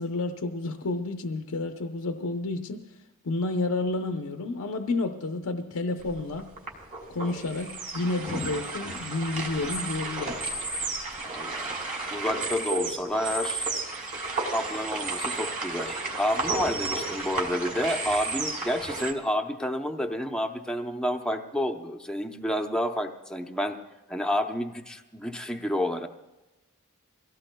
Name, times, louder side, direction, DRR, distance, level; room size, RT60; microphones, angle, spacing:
voice 1, 0.0-2.8 3.2-6.5 7.1-10.4, left 2 dB, 75° left, 5 dB, 0.7 m, -30 dB
sound 1, 6.0-19.1, right 3 dB, 40° right, 2.6 m, -32 dB
voice 2, 11.2-11.7 12.1-13.7 14.5-23.8 24.1-26.1, equal, 5° left, 3 dB, 0.6 m, -30 dB
24.0 x 17.0 x 2.2 m, 1.1 s
head